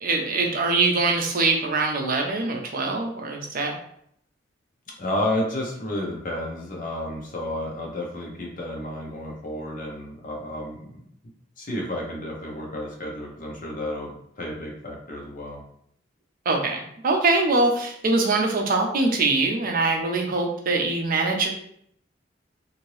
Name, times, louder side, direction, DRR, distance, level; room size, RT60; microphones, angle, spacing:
voice 1, 0.0-3.8 16.5-21.5, right 3 dB, 50° right, 2 dB, 0.5 m, -23 dB
voice 2, 5.0-11.0 11.6-15.6, left 1 dB, 45° left, -1 dB, 0.8 m, -31 dB
2.8 x 2.6 x 3.1 m, 0.69 s
head